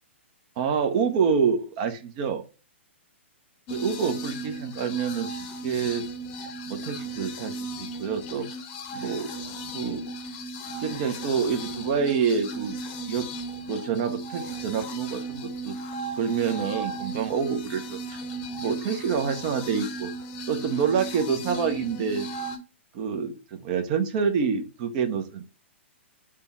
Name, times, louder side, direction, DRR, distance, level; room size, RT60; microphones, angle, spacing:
voice 1, 0.6-2.4 3.7-6.0 6.7-7.5 7.8-8.5 8.9-9.3 9.7-10.0 10.8-12.8 13.1-13.2 13.7-15.7 16.2-18.2 18.6-20.1 20.5-22.3 22.9-25.4, right 6 dB, 40° right, 7 dB, 0.7 m, -27 dB
sound 1, 3.7-22.6, right 2 dB, 35° left, 0.7 m, -36 dB
3.5 x 2.2 x 4.2 m, 0.33 s
figure-of-eight pair, 115°, 7 cm